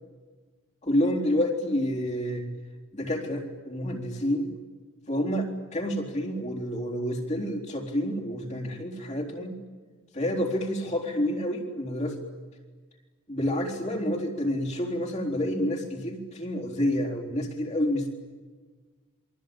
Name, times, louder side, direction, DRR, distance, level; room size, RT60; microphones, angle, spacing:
voice 1, 0.8-2.5 2.9-4.5 5.1-9.6 10.1-12.2 13.3-18.1, equal, 30° left, -1 dB, 3.9 m, -28 dB
28.0 x 23.5 x 9.0 m, 1.4 s
head